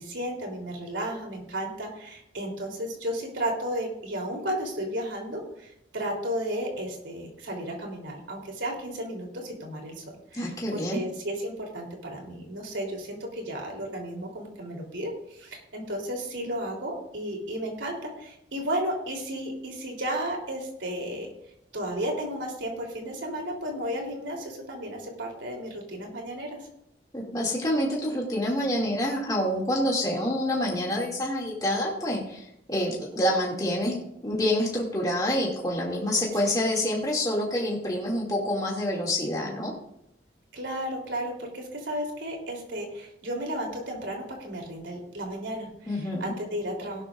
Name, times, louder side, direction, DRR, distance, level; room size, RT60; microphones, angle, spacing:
voice 1, 0.0-10.0 10.3-21.3 21.7-26.6 36.5-37.0 40.5-47.0, right 1 dB, 85° right, 0 dB, 3.5 m, -33 dB
voice 2, 10.3-11.0 27.1-33.9 34.2-39.7 45.9-46.3, left 1 dB, 20° left, -4 dB, 2.4 m, -27 dB
17.0 x 12.0 x 2.5 m, 0.77 s
head